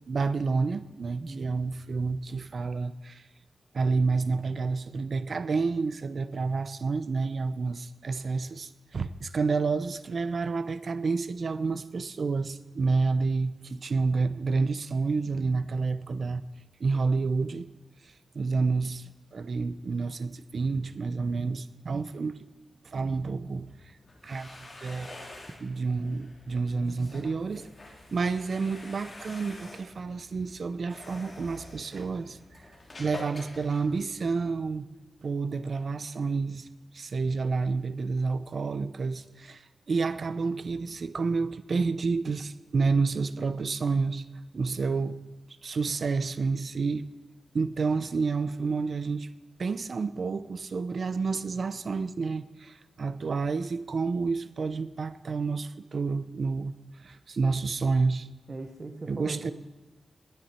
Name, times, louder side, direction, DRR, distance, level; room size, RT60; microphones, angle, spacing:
voice 1, 0.1-3.2 3.7-16.4 16.8-17.7 18.3-22.4 22.8-23.7 24.2-25.2 25.6-27.6 28.1-32.4 33.0-34.8 35.2-36.7 36.9-39.6 39.9-44.2 44.6-45.2 45.6-47.0 47.5-49.3 49.6-56.7 57.0-58.3 59.1-59.5, right 4 dB, 55° right, 0.6 m, -29 dB
voice 2, 1.2-1.5 58.5-59.5, right 3 dB, 35° right, 0.9 m, -39 dB
sound 1, 24.0-34.6, left 2 dB, 35° left, 3.2 m, -47 dB
20.0 x 9.8 x 4.4 m
wide cardioid pair, 135°, 0 cm